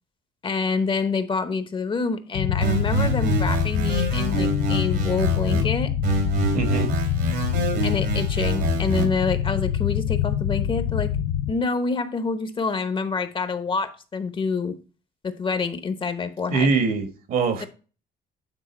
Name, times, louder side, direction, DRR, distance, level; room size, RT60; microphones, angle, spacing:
voice 1, 0.4-5.9 7.8-11.1 11.5-14.7 15.2-16.7 17.6-17.7, left 4 dB, 30° left, 0.9 m, -27 dB
sound 1, 2.3-11.5, left 10 dB, 85° left, 0.6 m, -25 dB
sound 2, 2.6-5.6 6.0-9.0, right 3 dB, 80° right, 2.7 m, -26 dB
voice 2, 6.5-6.9 16.5-17.7, right 4 dB, 60° right, 1.5 m, -23 dB
9.1 x 3.6 x 4.4 m
cardioid pair, 110°, 17 cm